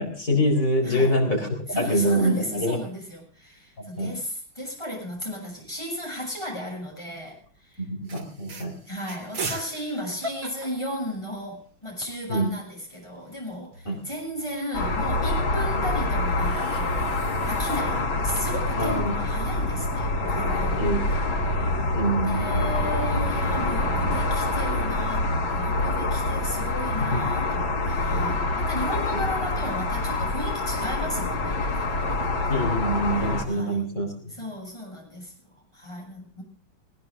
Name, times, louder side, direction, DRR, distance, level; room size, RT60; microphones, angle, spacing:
voice 1, 0.0-2.8 3.8-4.1 7.8-8.8 12.3-12.5 13.9-14.0 18.8-19.1 20.8-21.1 21.9-22.7 27.1-27.2 28.9-29.2 32.5-34.3, equal, 40° left, 2 dB, 4.5 m, -25 dB
voice 2, 1.7-7.9 8.8-21.8 22.2-32.6 33.1-33.8 34.3-36.4, equal, 15° left, 0 dB, 7.9 m, -35 dB
sound 1, 2.4-3.1 3.5-3.6 3.8-4.4 5.3-6.5 7.1-7.3 7.7-7.8 8.0-11.7 12.1-12.2 12.3-14.6 15.9-17.8, right 2 dB, 85° right, 3.3 m, -40 dB
sound 2, 14.7-33.4, left 2 dB, 85° left, 3.2 m, -26 dB
20.5 x 20.0 x 2.6 m, 0.42 s
omnidirectional pair, 2.1 m